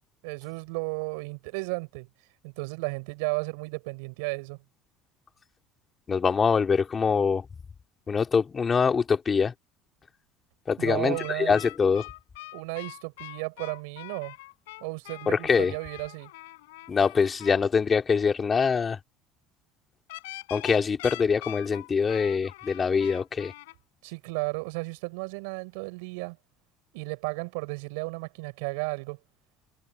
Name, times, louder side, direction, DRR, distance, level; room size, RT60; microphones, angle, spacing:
voice 1, 0.2-2.1 2.4-4.6 10.8-11.6 12.5-14.3 14.8-16.3 24.0-26.4 26.9-29.2, right 30 dB, 80° right, 6.5 m, -34 dB
voice 2, 6.1-7.5 8.1-9.5 10.7-12.1 15.3-15.7 16.9-19.0 20.5-23.5, left 5 dB, 30° left, 3.4 m, -24 dB
sound 1, 11.1-17.6 20.1-23.7, left 19 dB, 85° left, 5.5 m, -43 dB
supercardioid pair, 85°, 0 cm